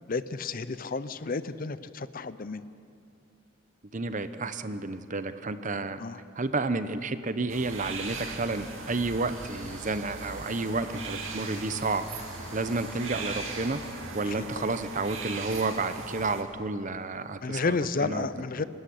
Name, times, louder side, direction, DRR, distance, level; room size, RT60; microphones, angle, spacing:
voice 1, 0.1-2.6 6.0-6.2 14.2-14.7 17.4-18.6, left 4 dB, 45° left, 14 dB, 0.6 m, -32 dB
voice 2, 3.9-6.0 6.4-12.2 12.5-13.8 14.1-18.3, right 3 dB, 35° right, 11 dB, 0.8 m, -31 dB
sound 1, 7.5-16.4, right 4 dB, 70° right, 2.6 m, -39 dB
sound 2, 7.8-14.0, equal, 5° left, 4.7 m, -46 dB
26.0 x 13.0 x 10.0 m, 2.6 s
head